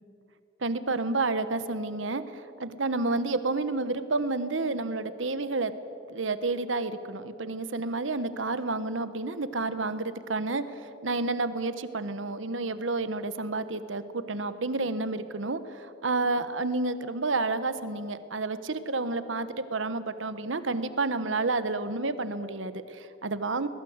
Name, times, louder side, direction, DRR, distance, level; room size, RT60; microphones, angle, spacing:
voice 1, 0.6-5.7 6.1-23.7, right 3 dB, 75° right, 12 dB, 1.2 m, -30 dB
22.0 x 20.5 x 8.1 m, 2.6 s
head